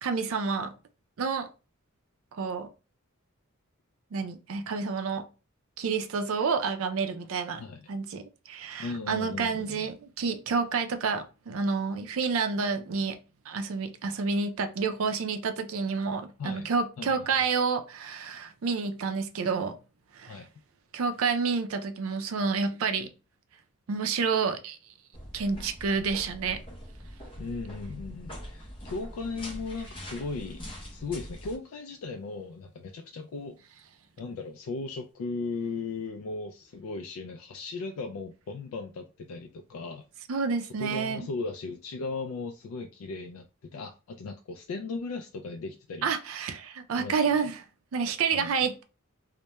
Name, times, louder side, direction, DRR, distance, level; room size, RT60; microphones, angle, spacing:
voice 1, 0.0-0.8 1.2-1.5 2.3-2.7 4.1-5.3 5.8-7.6 7.9-13.2 13.5-19.8 20.1-20.4 20.9-23.1 23.9-24.8 25.3-26.6 40.3-41.3 46.0-47.6 47.9-48.8, right 5 dB, 70° right, 0.4 m, -29 dB
voice 2, 7.6-7.9 8.8-9.8 16.4-16.7 17.0-17.1 20.3-20.5 27.4-30.6 30.9-33.6 34.2-40.1 40.8-46.1 47.0-47.5 48.3-48.5, left 4 dB, 75° left, 0.3 m, -37 dB
sound 1, 25.1-31.6, equal, 25° left, 0.6 m, -43 dB
2.2 x 2.1 x 2.8 m
head